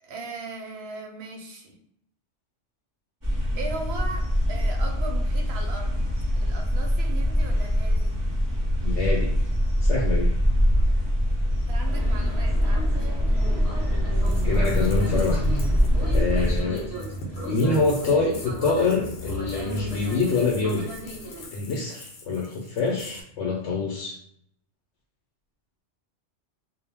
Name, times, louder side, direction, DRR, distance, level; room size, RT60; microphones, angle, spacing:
voice 1, 0.0-1.7 3.5-5.9 6.4-8.1 11.7-13.2, right 3 dB, 65° right, 2 dB, 0.8 m, -38 dB
sound 1, 3.2-16.6, equal, 25° right, 0.5 m, -23 dB
voice 2, 8.8-9.3 9.8-10.3 14.4-15.6 16.0-16.8 17.4-20.9 21.5-24.2, left 3 dB, 85° left, -3 dB, 0.9 m, -25 dB
sound 2, 11.8-21.5, equal, 25° left, 0.8 m, -35 dB
sound 3, 14.2-23.2, equal, 65° left, 0.7 m, -43 dB
2.1 x 2.0 x 3.3 m, 0.72 s
omnidirectional pair, 1.2 m